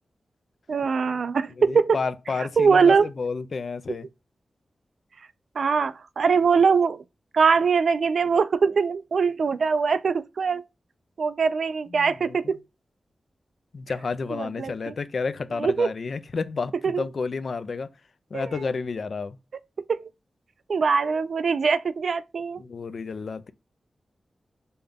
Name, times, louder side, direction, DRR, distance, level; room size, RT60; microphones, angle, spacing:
voice 1, 0.7-2.0 2.6-3.1 5.6-7.0 7.3-10.6 11.2-12.6 14.3-14.9 15.6-15.9 16.8-17.0 18.3-18.5 19.9-20.1 20.7-22.6, right 5 dB, 70° right, 0.3 m, -22 dB
voice 2, 1.6-4.1 11.9-12.5 13.7-17.9 18.3-19.4 22.6-23.5, left 4 dB, 60° left, 0.4 m, -31 dB
5.3 x 2.2 x 3.4 m
wide cardioid pair, 135°, 0 cm